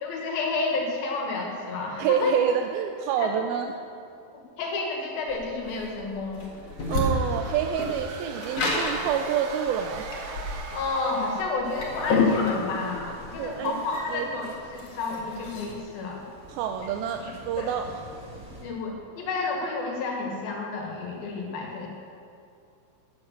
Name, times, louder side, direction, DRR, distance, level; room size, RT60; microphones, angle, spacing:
voice 1, 0.0-2.3 3.2-3.3 4.6-6.4 10.7-16.2 17.2-17.3 17.6-17.7 18.6-21.9, left 3 dB, 75° left, 0 dB, 3.8 m, -31 dB
voice 2, 2.0-3.7 6.9-10.1 13.4-13.7 14.1-14.5 16.5-17.9, right 8 dB, 85° right, 5 dB, 2.4 m, -27 dB
sound 1, 5.3-15.7, left 3 dB, 45° left, 2.8 m, -29 dB
sound 2, 6.7-11.7, right 4 dB, 65° right, 1.9 m, -40 dB
sound 3, 11.6-18.6, right 1 dB, 30° right, 1.9 m, -48 dB
13.0 x 10.5 x 6.6 m, 2.5 s
omnidirectional pair, 4.3 m